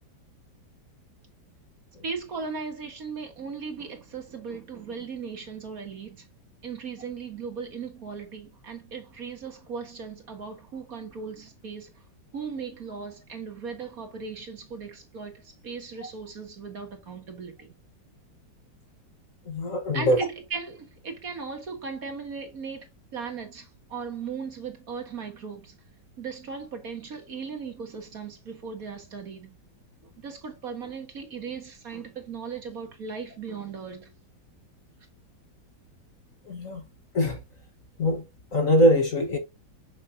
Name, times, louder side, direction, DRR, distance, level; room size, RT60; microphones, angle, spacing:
voice 1, 2.0-6.3 6.6-11.9 12.3-17.7 19.9-25.8 26.2-29.6 30.2-34.1, right 5 dB, 50° right, 1.9 m, -37 dB
voice 2, 19.5-20.2 36.5-36.8 37.1-37.4 38.0-38.2 38.5-39.4, equal, 45° left, 1.3 m, -22 dB
6.8 x 6.4 x 2.6 m
omnidirectional pair, 2.1 m